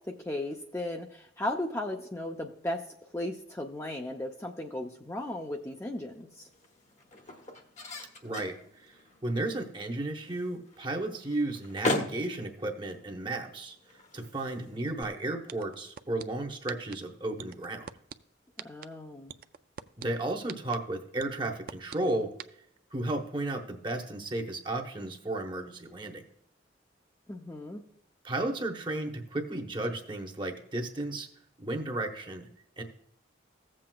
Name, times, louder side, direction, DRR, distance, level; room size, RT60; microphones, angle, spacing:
voice 1, 0.2-2.8 3.1-6.5 18.6-19.3 27.3-27.8, left 1 dB, 15° left, 1 dB, 0.5 m, -36 dB
sound 1, 4.9-15.3, left 2 dB, 40° left, 1.0 m, -40 dB
voice 2, 8.2-8.9 9.2-13.8 14.1-17.9 20.0-22.3 22.9-26.2 28.2-31.3 31.6-32.5 32.8-32.9, right 2 dB, 25° right, 4 dB, 0.9 m, -34 dB
sound 2, 15.0-15.1 15.5-16.2 16.7-16.9 17.4-18.1 18.6-18.9 19.3-20.0 20.5-20.8 21.2-22.0 22.4-22.5, right 8 dB, 50° right, 0.3 m, -41 dB
15.5 x 7.6 x 2.3 m, 0.73 s
head